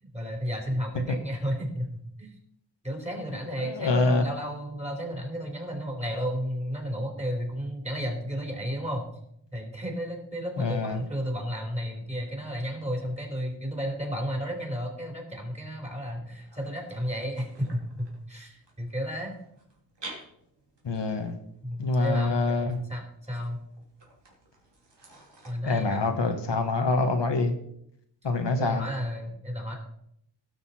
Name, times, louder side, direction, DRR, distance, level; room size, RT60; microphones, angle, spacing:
voice 1, 0.0-1.9 2.2-2.3 2.8-9.1 9.5-19.4 21.6-23.6 25.4-26.1 28.6-29.7, equal, 15° right, 1 dB, 3.3 m, -33 dB
voice 2, 3.6-4.2 10.6-11.0 20.8-21.4 21.8-22.8 25.6-27.5 28.2-28.9, left 3 dB, 70° left, 5 dB, 1.4 m, -25 dB
sound 1, 16.3-25.5, right 2 dB, 70° right, 3.1 m, -51 dB
17.5 x 6.7 x 4.3 m, 0.72 s
wide cardioid pair, 80°, 44 cm